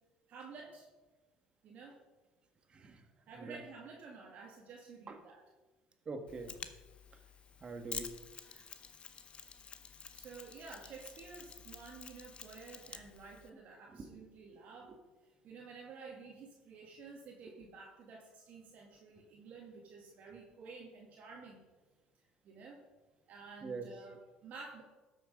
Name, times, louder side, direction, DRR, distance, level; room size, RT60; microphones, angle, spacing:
voice 1, 0.3-0.9 1.6-2.0 3.3-5.4 10.1-15.0 15.2-21.6 22.4-22.8 23.3-24.8, right 4 dB, 55° right, -1 dB, 1.8 m, -51 dB
voice 2, 2.7-3.0 3.4-3.6 5.1-5.2 6.0-6.6 7.6-8.1 8.5-8.6 13.9-14.1 23.6-23.9, right 4 dB, 35° right, 7 dB, 1.5 m, -44 dB
Mechanisms, 6.3-13.5, left 6 dB, 35° left, 0.8 m, -49 dB
12.5 x 6.4 x 5.1 m, 1.2 s
supercardioid pair, 90°, 3 cm